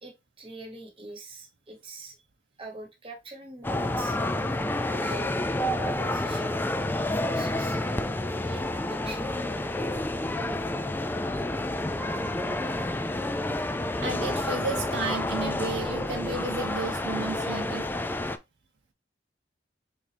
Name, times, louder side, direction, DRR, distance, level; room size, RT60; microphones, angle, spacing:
voice 1, 0.0-2.2 2.6-4.2 4.9-5.4 5.7-6.6 6.9-10.1 12.4-12.5 13.0-13.2 13.7-13.8, right 2 dB, 30° right, 1.2 m, -43 dB
sound 1, 3.6-18.4, left 1 dB, 10° left, 0.3 m, -29 dB
voice 2, 10.4-10.9 14.0-17.9, right 3 dB, 70° right, 0.8 m, -33 dB
4.1 x 3.6 x 3.3 m
head